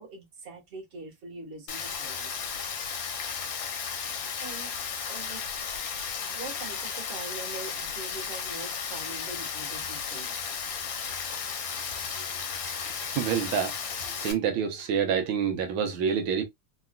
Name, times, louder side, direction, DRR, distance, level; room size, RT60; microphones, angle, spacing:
voice 1, 0.0-2.5 4.4-4.7 5.1-5.4 6.3-10.5, right 3 dB, 30° right, 1.4 m, -43 dB
Rain, 1.7-14.3, left 6 dB, 70° left, 1.5 m, -34 dB
voice 2, 12.6-13.8 14.2-16.4, right 7 dB, 80° right, 1.6 m, -28 dB
3.9 x 2.3 x 2.2 m
omnidirectional pair, 2.3 m